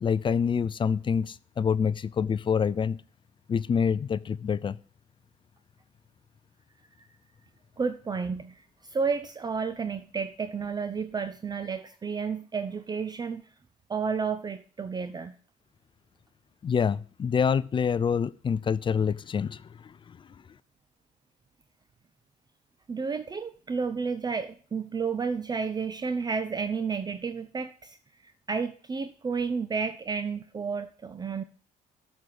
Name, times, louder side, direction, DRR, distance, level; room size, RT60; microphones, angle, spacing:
voice 1, 0.0-3.0 3.5-4.8 16.6-20.3, left 6 dB, 30° left, 19 dB, 0.4 m, -26 dB
voice 2, 7.8-13.4 13.9-15.3 22.9-28.0 28.2-31.4, right 5 dB, 25° right, 11 dB, 0.6 m, -31 dB
7.3 x 6.4 x 7.8 m, 0.43 s
cardioid pair, 110°, 17 cm